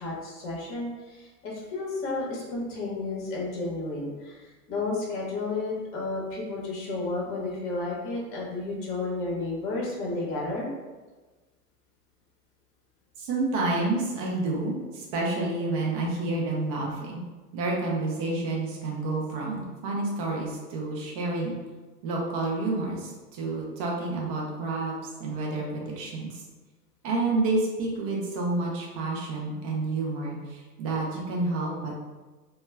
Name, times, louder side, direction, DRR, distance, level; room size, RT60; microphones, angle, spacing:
voice 1, 0.0-10.7, left 3 dB, 25° left, -3 dB, 0.8 m, -32 dB
voice 2, 13.2-17.2 17.5-21.5 22.0-24.9 25.2-26.4 27.0-32.0, right 2 dB, 25° right, -3 dB, 0.3 m, -29 dB
2.1 x 2.1 x 3.2 m, 1.3 s
hypercardioid pair, 115°, 48 cm